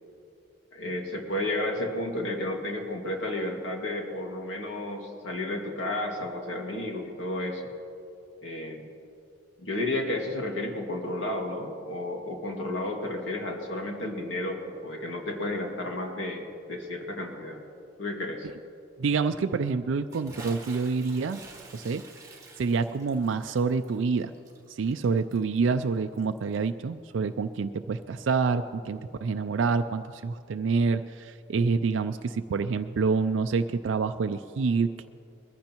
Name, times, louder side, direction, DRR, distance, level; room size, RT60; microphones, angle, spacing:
voice 1, 0.7-7.6 8.4-8.9 9.6-17.6 18.0-18.5, left 1 dB, 85° left, 1 dB, 2.0 m, -32 dB
voice 2, 19.0-21.4 21.7-22.0 22.6-24.3 24.7-35.1, right 4 dB, 80° right, 8 dB, 0.4 m, -27 dB
Bathtub (filling or washing) / Splash splatter, 20.1-26.7, right 3 dB, 15° right, 1.3 m, -49 dB
22.0 x 15.0 x 3.0 m, 2.5 s
head